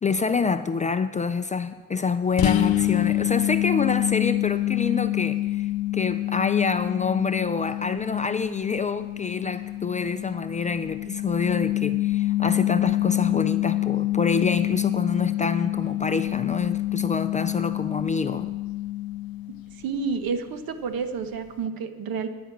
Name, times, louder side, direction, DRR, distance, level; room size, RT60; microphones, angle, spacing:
voice 1, 0.0-18.6, left 5 dB, 20° left, 10 dB, 0.3 m, -27 dB
sound 1, 2.4-19.9, left 15 dB, 80° left, 0.6 m, -27 dB
voice 2, 19.8-22.3, right 5 dB, 75° right, 9 dB, 1.1 m, -29 dB
10.5 x 9.3 x 7.2 m, 1.3 s
cardioid pair, 145°, 36 cm